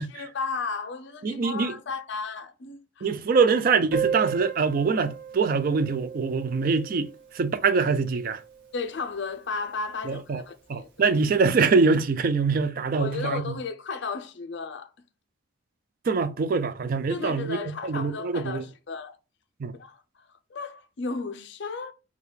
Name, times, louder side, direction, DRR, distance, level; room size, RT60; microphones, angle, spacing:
voice 1, 0.0-3.1 8.7-11.1 13.0-14.9 17.1-19.2 19.8-21.9, left 4 dB, 55° left, 0.5 m, -34 dB
voice 2, 1.2-1.7 3.0-7.1 7.3-8.4 10.1-10.4 10.7-13.6 16.1-17.6 17.8-18.6 19.6-19.8, right 4 dB, 45° right, 0.3 m, -24 dB
Piano, 3.9-9.3 9.5-9.6 9.8-10.0 10.3-10.4 11.2-11.4, right 7 dB, 60° right, 1.0 m, -35 dB
4.7 x 2.3 x 3.2 m
head